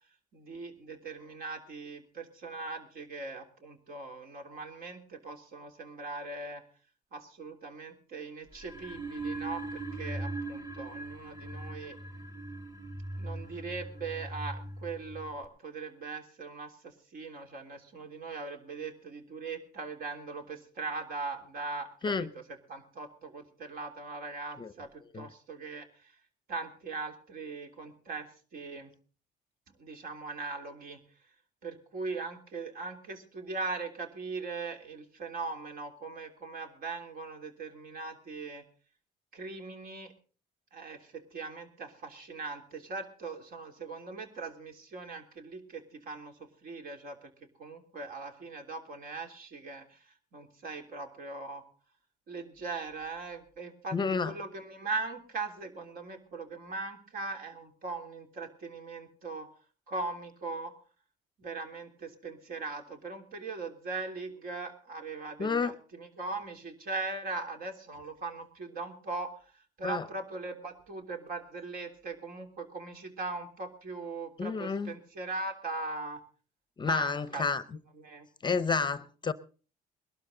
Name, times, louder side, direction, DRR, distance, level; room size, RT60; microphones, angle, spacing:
voice 1, 0.3-6.6 7.1-12.0 13.2-22.4 22.7-25.8 26.5-28.9 29.8-31.0 31.6-38.6 39.3-40.1 40.7-46.3 46.6-47.3 47.6-50.0 50.3-51.6 52.3-59.5 59.9-60.7 61.4-69.3 69.8-76.2 76.8-77.4 77.9-78.3, right 3 dB, 60° right, 3.3 m, -40 dB
sound 1, 8.5-15.4, right 2 dB, 20° right, 1.8 m, -40 dB
voice 2, 53.9-54.3 65.4-65.7 69.8-70.1 74.4-74.9 76.8-77.6 78.4-79.3, left 4 dB, 25° left, 0.7 m, -30 dB
21.0 x 12.5 x 3.9 m
cardioid pair, 110°, 17 cm